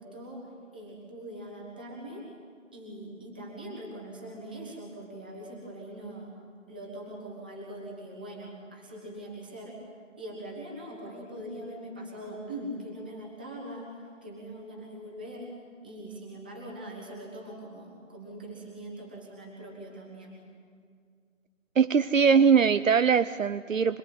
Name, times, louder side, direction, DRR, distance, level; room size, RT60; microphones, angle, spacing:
voice 1, 0.0-2.3 2.7-6.3 6.7-9.8 10.2-20.5, right 1 dB, 5° right, -3 dB, 1.4 m, -42 dB
voice 2, 21.8-24.0, right 6 dB, 75° right, 13 dB, 0.8 m, -21 dB
26.0 x 20.5 x 9.8 m, 2.2 s
figure-of-eight pair, 175°, 40 cm